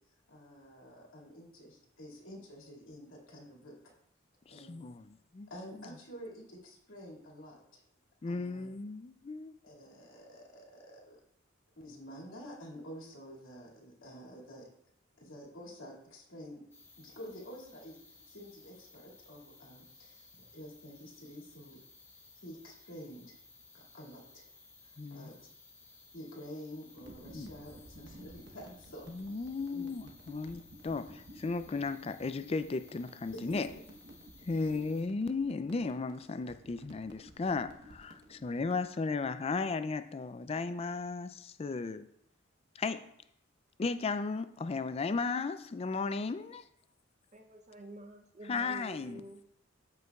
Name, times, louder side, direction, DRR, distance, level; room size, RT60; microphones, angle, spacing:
voice 1, 0.3-3.8 4.5-4.8 5.5-7.8 8.3-8.7 9.6-11.2 11.8-14.7 15.2-16.6 17.0-18.0 18.3-21.8 22.4-23.3 23.7-24.5 24.8-25.4 26.1-29.4 29.7-29.9 33.4-33.6 34.5-34.7, equal, 80° left, -3 dB, 2.3 m, -49 dB
voice 2, 4.5-5.5 8.2-9.5 25.0-25.3 27.3-27.5 29.1-33.7 34.5-42.1 42.8-43.1 43.8-46.6 48.4-49.2, left 4 dB, 30° left, 11 dB, 0.3 m, -35 dB
sound 1, 16.7-35.0, left 3 dB, 10° left, 0.9 m, -59 dB
sound 2, 26.9-38.8, equal, 55° right, 1.1 m, -55 dB
voice 3, 47.3-49.4, right 2 dB, 35° right, 4 dB, 0.6 m, -49 dB
13.5 x 5.3 x 2.3 m, 0.72 s
head